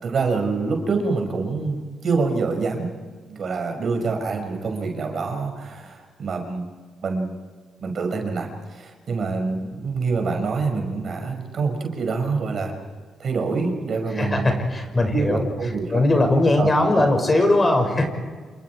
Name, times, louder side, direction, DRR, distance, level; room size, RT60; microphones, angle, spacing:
voice 1, 0.0-2.9 3.3-6.6 7.0-7.3 7.8-12.7 13.2-14.6 15.1-16.0 16.6-17.0, right 4 dB, 60° right, 3 dB, 6.0 m, -26 dB
voice 2, 14.2-15.4 15.9-18.0, left 2 dB, 25° left, 5 dB, 6.4 m, -19 dB
29.0 x 28.0 x 4.9 m, 1.5 s
cardioid pair, 75°, 0 cm